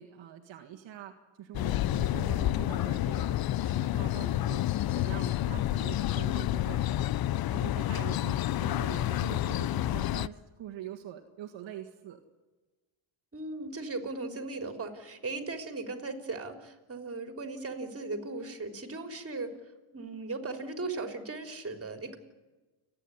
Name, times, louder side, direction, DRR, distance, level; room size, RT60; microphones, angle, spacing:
voice 1, 0.0-4.6 4.9-6.9 7.5-12.2, right 11 dB, 65° right, 3 dB, 1.9 m, -44 dB
sound 1, 1.5-10.3, left 14 dB, 50° left, 0.6 m, -29 dB
voice 2, 13.3-19.5 19.9-22.2, right 3 dB, 30° right, 6 dB, 3.7 m, -37 dB
29.5 x 10.0 x 9.9 m, 1.2 s
cardioid pair, 95°, 48 cm